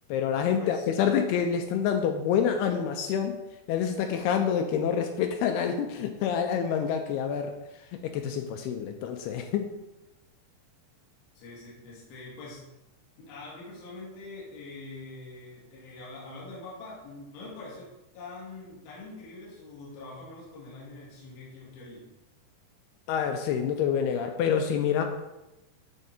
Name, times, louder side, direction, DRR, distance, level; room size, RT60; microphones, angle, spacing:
voice 1, 0.1-3.4 3.7-7.5 8.0-9.7 23.1-25.0, left 8 dB, 85° left, 5 dB, 2.3 m, -27 dB
voice 2, 11.3-12.7 13.2-22.1, left 3 dB, 65° left, -6 dB, 3.4 m, -44 dB
9.9 x 3.6 x 4.3 m, 0.98 s
omnidirectional pair, 4.9 m